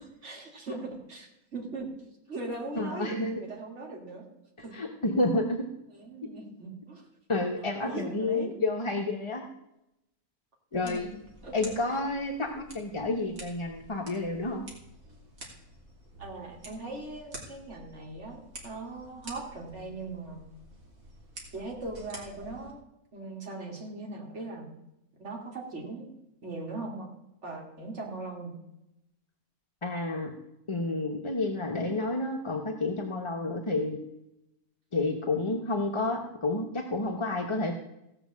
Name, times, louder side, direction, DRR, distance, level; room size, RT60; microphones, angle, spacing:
voice 1, 0.0-1.9 2.3-4.3 4.6-4.7 5.9-7.1 7.6-8.5 10.7-11.1 11.4-11.5 16.2-20.4 21.5-22.8 23.1-24.8 25.2-26.1 26.4-27.1 27.4-28.6, right 2 dB, 50° right, -1 dB, 2.7 m, -39 dB
voice 2, 2.8-3.3 4.7-5.6 7.3-9.4 10.7-11.1 11.5-14.6 29.8-30.3 30.7-34.0 34.9-37.7, left 2 dB, 25° left, 1 dB, 0.8 m, -30 dB
sound 1, 10.7-22.7, right 1 dB, 65° right, 3.0 m, -49 dB
15.5 x 6.0 x 7.2 m, 0.87 s
omnidirectional pair, 1.6 m